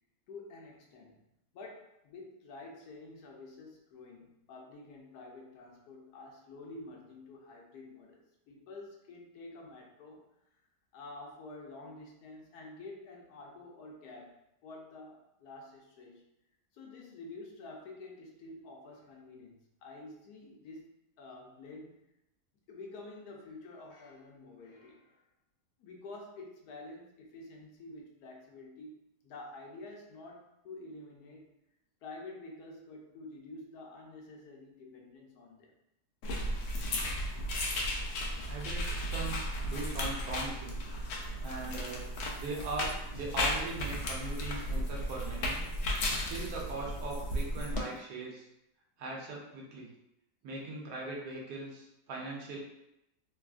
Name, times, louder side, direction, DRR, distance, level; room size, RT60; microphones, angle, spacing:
voice 1, 0.3-1.3 1.5-10.3 10.9-14.4 14.6-16.2 16.7-22.1 22.7-25.2 25.8-31.5 32.0-35.7, left 2 dB, 85° left, 0 dB, 1.2 m, -49 dB
sound 1, 36.2-47.8, equal, 70° left, 0.6 m, -35 dB
voice 2, 38.4-40.8 41.4-42.0 42.4-45.6 46.3-48.4 49.0-49.9 50.4-52.6, right 2 dB, 85° right, -2 dB, 1.3 m, -40 dB
sound 2, 41.4-48.0, left 1 dB, 25° left, 0.8 m, -57 dB
3.3 x 2.3 x 2.4 m, 0.85 s
omnidirectional pair, 1.7 m